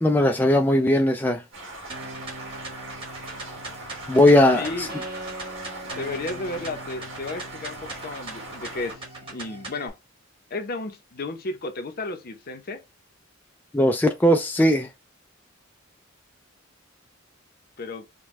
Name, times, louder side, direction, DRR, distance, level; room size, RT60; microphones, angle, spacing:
voice 1, 0.0-1.4 4.1-4.9 13.7-14.9, left 1 dB, 10° left, 0.3 m, -18 dB
sound 1, 1.5-8.9, right 1 dB, 70° right, 1.9 m, -40 dB
sound 2, 1.9-9.9, right 2 dB, 25° right, 1.4 m, -39 dB
voice 2, 4.5-4.9 5.9-9.0 9.3-10.0 10.5-12.8 17.8-18.0, left 2 dB, 50° left, 0.7 m, -33 dB
5.2 x 2.2 x 3.1 m
head